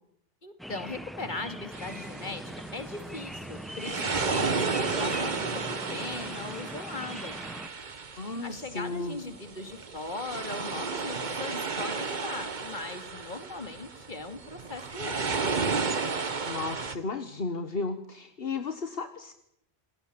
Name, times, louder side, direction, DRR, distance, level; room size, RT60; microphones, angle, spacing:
voice 1, 0.4-2.4 2.7-5.6 5.9-7.4 8.4-15.3, left 3 dB, 50° left, 9 dB, 2.6 m, -39 dB
sound 1, 0.6-7.7, equal, ahead, 1.0 m, -41 dB
sound 2, 1.7-17.0, right 4 dB, 50° right, 1.4 m, -33 dB
voice 2, 8.2-9.2 16.4-19.3, left 3 dB, 70° left, 9 dB, 1.6 m, -34 dB
27.5 x 18.0 x 8.5 m, 0.75 s
omnidirectional pair, 1.0 m